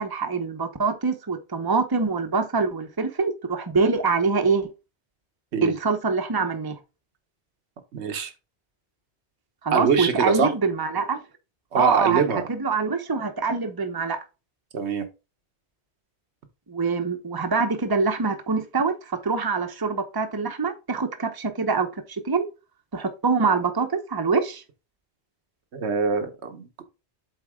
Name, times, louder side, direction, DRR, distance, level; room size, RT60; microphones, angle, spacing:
voice 1, 0.0-4.7 5.6-6.8 9.6-11.2 11.8-14.2 16.7-22.5 22.9-24.6, right 4 dB, 20° right, 0.8 m, -24 dB
voice 2, 7.9-8.3 9.7-10.6 11.7-12.4 14.7-15.1 25.7-26.8, right 6 dB, 75° right, 1.3 m, -24 dB
7.9 x 4.1 x 3.6 m
omnidirectional pair, 1.1 m